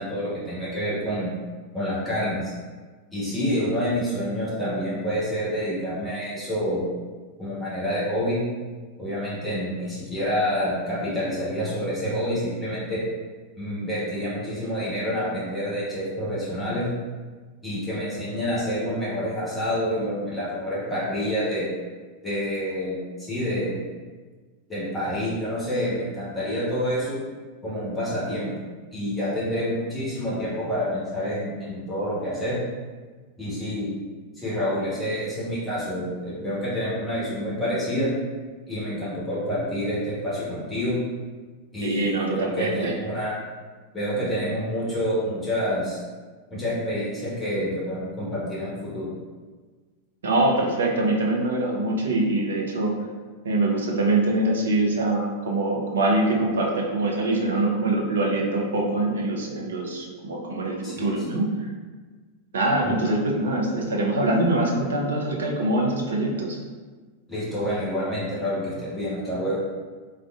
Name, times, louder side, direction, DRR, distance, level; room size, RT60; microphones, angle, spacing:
voice 1, 0.0-1.3 1.7-2.5 3.1-6.9 7.4-8.4 9.0-13.0 13.6-16.9 17.6-21.7 22.2-23.8 24.7-27.2 27.6-28.5 28.9-32.6 33.4-33.9 34.4-38.1 38.7-41.0 41.7-43.3 43.9-46.0 46.5-49.1 60.8-61.1 62.8-63.1 67.3-69.6, equal, 10° left, -9 dB, 1.2 m, -28 dB
voice 2, 41.8-42.9 50.2-52.9 53.4-61.5 62.5-66.6, right 2 dB, 65° right, -1 dB, 0.5 m, -24 dB
3.5 x 2.2 x 2.4 m, 1.4 s
figure-of-eight pair, 90°, 0 cm